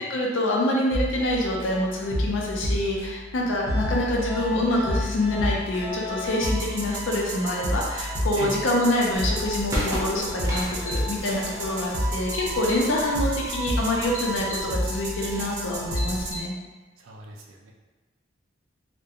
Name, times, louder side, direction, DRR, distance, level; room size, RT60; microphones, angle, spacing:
voice 1, 0.0-16.5, left 1 dB, 70° left, -2 dB, 0.5 m, -26 dB
sound 1, 0.9-16.3, equal, 60° right, 0.7 m, -30 dB
sound 2, 9.1-16.4, equal, 15° left, 1.1 m, -39 dB
sound 3, 9.1-15.5, equal, 15° right, 0.5 m, -36 dB
voice 2, 17.0-17.7, right 3 dB, 85° right, 0 dB, 0.4 m, -39 dB
2.4 x 2.1 x 2.7 m, 1.2 s
head